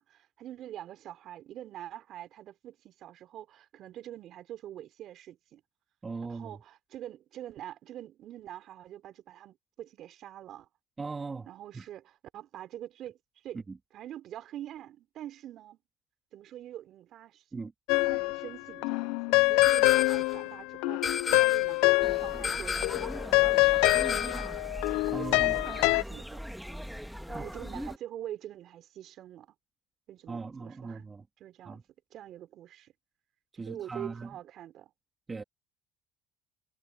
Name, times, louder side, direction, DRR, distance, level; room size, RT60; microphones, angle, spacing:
voice 1, 0.0-5.6 6.3-10.7 11.5-13.2 13.4-13.6 13.9-15.8 16.3-17.4 18.1-23.0 23.4-24.5 25.0-26.4 27.3-29.5 30.1-31.1 31.4-31.8 32.1-32.9 33.7-34.9, right 12 dB, 55° right, 4.5 m, -45 dB
voice 2, 6.0-6.6 11.0-11.9 13.7-13.8 17.5-17.7 25.1-25.6 27.3-27.5 30.3-31.2 31.6-31.8 33.6-34.4 35.3-35.4, right 4 dB, 25° right, 2.6 m, -39 dB
sound 1, 17.9-18.5 18.8-22.5 22.8-26.0, left 24 dB, 75° left, 0.5 m, -25 dB
sound 2, 19.6-20.4 21.0-21.8 22.4-23.2 23.8-24.6, left 6 dB, 35° left, 1.7 m, -33 dB
sound 3, 22.0-28.0, equal, ahead, 2.1 m, -40 dB
supercardioid pair, 80°, 0 cm